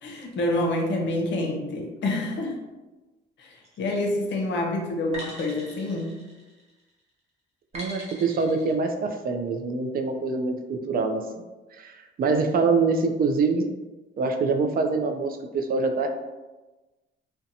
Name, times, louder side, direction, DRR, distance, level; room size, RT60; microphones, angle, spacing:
voice 1, 0.0-2.6 3.4-6.3, left 1 dB, 65° left, 1 dB, 0.6 m, -27 dB
sound 1, 3.6-4.1 5.1-6.8 7.7-8.7, equal, 30° right, 0.8 m, -41 dB
voice 2, 7.7-11.2 11.7-13.7 14.2-16.1, right 4 dB, 50° right, 5 dB, 0.4 m, -25 dB
2.6 x 2.2 x 2.6 m, 1.2 s
cardioid pair, 90°, 20 cm